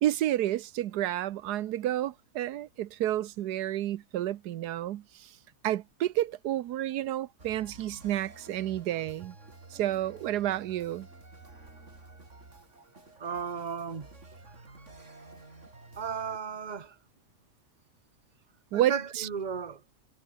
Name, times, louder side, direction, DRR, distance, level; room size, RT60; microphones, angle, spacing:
voice 1, 0.0-5.3 5.6-9.3 9.7-11.1 18.7-19.3, right 13 dB, 85° right, 1.3 m, -30 dB
sound 1, 7.4-16.4, right 2 dB, 50° right, 4.4 m, -51 dB
voice 2, 13.2-14.1 16.0-17.0 18.7-19.8, right 6 dB, 30° right, 1.4 m, -35 dB
omnidirectional pair, 1.7 m